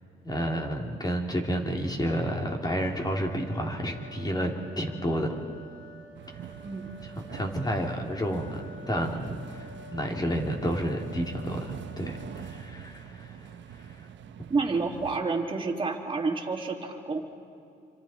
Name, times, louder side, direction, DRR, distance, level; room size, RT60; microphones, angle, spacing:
voice 1, 0.2-5.3 7.0-14.1, equal, 20° left, 1 dB, 3.1 m, -31 dB
sound 1, 2.8-12.7, left 1 dB, 45° left, 4.5 m, -50 dB
sound 2, 6.1-15.2, right 9 dB, 65° right, 1.0 m, -44 dB
voice 2, 14.5-17.2, right 4 dB, 25° right, 0 dB, 3.2 m, -29 dB
28.0 x 26.0 x 4.4 m, 2.6 s
cardioid pair, 90°, 20 cm